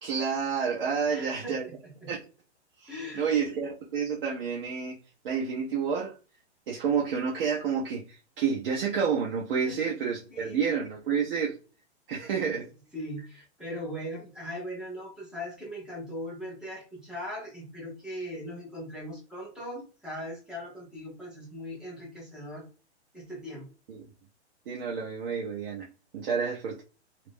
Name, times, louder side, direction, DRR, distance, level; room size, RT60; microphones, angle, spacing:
voice 1, 0.0-1.7 2.1-2.2 2.8-5.0 5.2-6.1 6.7-11.6 12.1-12.7 23.9-24.0 24.7-25.9 26.1-26.8, right 6 dB, 50° right, 0.6 m, -29 dB
voice 2, 1.1-1.7 2.0-2.1 2.9-3.4 9.6-9.8 10.3-10.8 12.4-12.5 12.9-22.6 23.1-23.7, equal, ahead, 0.5 m, -39 dB
2.4 x 2.0 x 3.3 m
hypercardioid pair, 150°, 34 cm